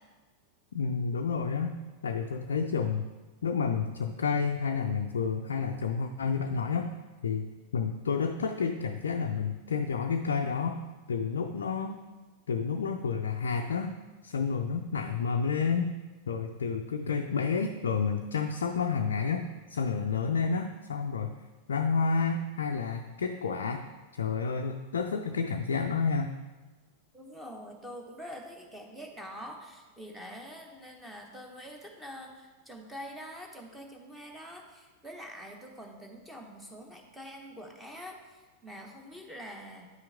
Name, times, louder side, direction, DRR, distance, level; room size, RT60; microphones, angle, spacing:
voice 1, 0.7-1.8 2.0-3.1 3.4-6.9 7.2-7.5 7.7-10.8 11.1-12.0 12.5-13.9 14.2-15.9 16.3-21.3 21.7-23.9 24.2-26.4, left 5 dB, 65° left, 4 dB, 0.4 m, -30 dB
voice 2, 27.1-39.9, equal, 5° right, 1 dB, 1.1 m, -45 dB
9.3 x 5.8 x 3.5 m, 1.3 s
figure-of-eight pair, 90°, 0 cm